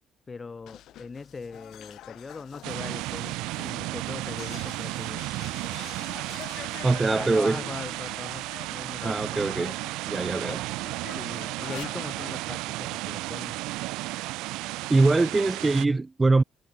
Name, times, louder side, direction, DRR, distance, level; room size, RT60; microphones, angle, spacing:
voice 1, 0.3-3.4 3.6-5.3 7.1-9.2 11.2-13.6, left 4 dB, 30° left, 1.5 m, -40 dB
sound 1, 0.6-9.9 10.2-12.4, left 13 dB, 70° left, 2.7 m, -46 dB
sound 2, 2.6-15.9, right 20 dB, 85° right, 1.1 m, -34 dB
voice 2, 6.8-7.6 9.0-9.8 10.1-10.7 14.9-16.4, right 3 dB, 20° right, 0.4 m, -23 dB
supercardioid pair, 80°, 0 cm